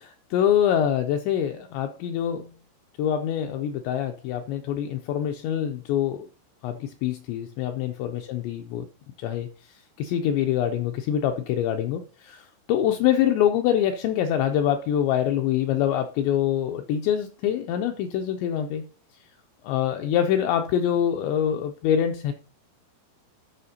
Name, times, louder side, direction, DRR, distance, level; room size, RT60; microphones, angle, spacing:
voice 1, 0.0-2.5 3.0-6.3 6.6-8.9 9.2-18.8 19.6-22.3, left 10 dB, 85° left, 2.5 m, -25 dB
14.5 x 5.7 x 2.8 m
omnidirectional pair, 5.7 m